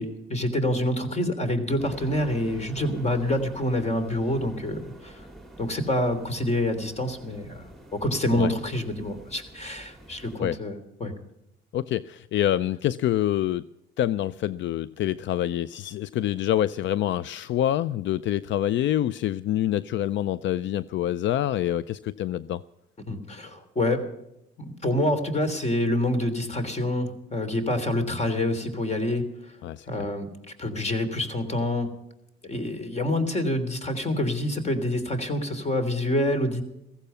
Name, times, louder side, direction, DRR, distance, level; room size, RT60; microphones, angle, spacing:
voice 1, 0.0-5.2 5.6-11.1 23.0-24.1 24.6-29.6 29.9-30.3 30.6-31.9 32.4-36.6, left 1 dB, 35° left, 3.2 m, -27 dB
sound 1, 1.8-10.4, right 1 dB, ahead, 2.7 m, -47 dB
voice 2, 11.7-13.7 14.0-22.6 29.6-29.9, left 12 dB, 70° left, 0.5 m, -26 dB
15.5 x 15.5 x 5.6 m
cardioid pair, 90°, 20 cm